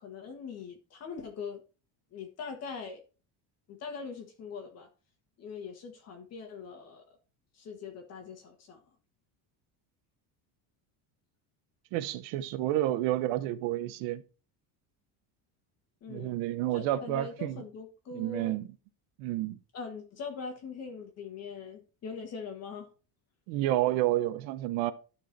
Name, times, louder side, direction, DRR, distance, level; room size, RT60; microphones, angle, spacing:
voice 1, 0.0-1.6 2.1-3.0 3.7-4.9 5.4-7.0 7.5-8.8 16.0-16.4 16.7-18.5 19.7-22.9, left 5 dB, 35° left, 1.6 m, -42 dB
voice 2, 11.9-14.2 16.1-17.6 18.1-18.7 19.2-19.6 23.5-24.9, right 14 dB, 90° right, 0.9 m, -30 dB
12.5 x 4.6 x 4.5 m
cardioid pair, 180°, 43 cm